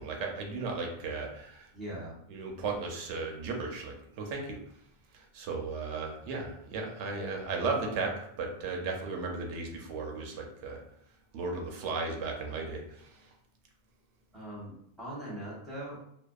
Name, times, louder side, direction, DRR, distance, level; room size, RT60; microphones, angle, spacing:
voice 1, 0.0-1.7 2.3-4.6 5.1-10.8 11.3-13.3, right 3 dB, 90° right, 2 dB, 0.9 m, -35 dB
voice 2, 1.7-2.2 14.3-16.0, right 1 dB, ahead, -7 dB, 0.8 m, -41 dB
2.6 x 2.1 x 2.3 m, 0.71 s
omnidirectional pair, 1.2 m